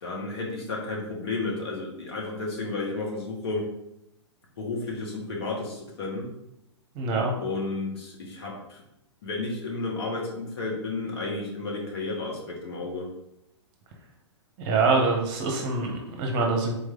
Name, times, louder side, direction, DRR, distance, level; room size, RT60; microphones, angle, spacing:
voice 1, 0.0-3.7 4.6-6.3 7.4-8.8 9.2-13.1, left 3 dB, 60° left, -1 dB, 1.4 m, -32 dB
voice 2, 7.0-7.3 14.6-16.8, right 3 dB, 30° right, 1 dB, 0.9 m, -25 dB
4.0 x 3.2 x 3.7 m, 0.85 s
figure-of-eight pair, 115°, 15 cm